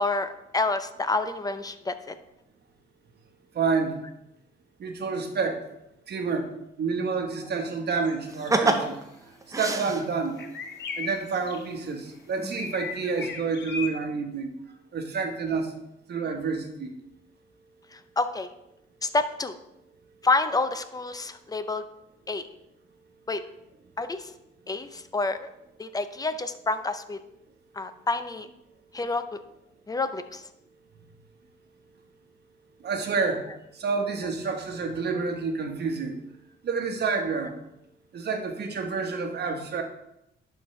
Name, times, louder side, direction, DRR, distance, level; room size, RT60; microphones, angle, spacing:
voice 1, 0.0-2.1 17.9-18.5 19.0-19.5 20.2-21.8 22.3-22.4 23.3-23.4 24.0-24.3 24.7-25.5 25.8-27.2 27.8-28.5 28.9-29.4 29.9-30.4, left 3 dB, 20° left, 11 dB, 0.6 m, -28 dB
voice 2, 3.5-4.0 4.8-5.6 6.1-6.5 6.8-9.0 9.5-10.4 11.0-14.5 14.9-15.7 16.1-16.9 32.8-33.5 33.7-36.2 36.6-37.5 38.1-39.8, right 4 dB, 55° right, 4 dB, 1.2 m, -28 dB
sound 1, 8.0-8.1 8.4-8.7 10.4-11.7 12.5-13.9, left 5 dB, 60° left, 0.9 m, -36 dB
sound 2, 8.3-10.4 11.8-11.9 12.4-12.8 13.2-13.3, right 3 dB, 15° right, 0.7 m, -27 dB
11.5 x 4.6 x 3.2 m, 0.84 s
cardioid pair, 90°, 20 cm